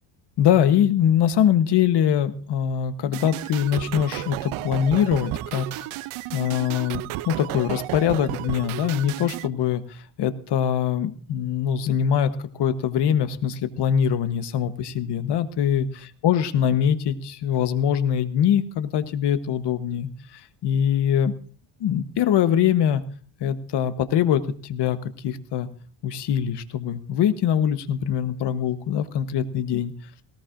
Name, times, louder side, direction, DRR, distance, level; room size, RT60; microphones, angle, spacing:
voice 1, 0.4-5.9 6.3-15.9 16.2-21.3 21.8-23.0 23.4-25.0 25.2-25.7 26.0-29.9, left 9 dB, 55° left, 11 dB, 1.1 m, -23 dB
sound 1, 3.1-9.5, right 17 dB, 85° right, 0.5 m, -33 dB
19.0 x 17.5 x 2.5 m, 0.42 s
cardioid pair, 155°, 48 cm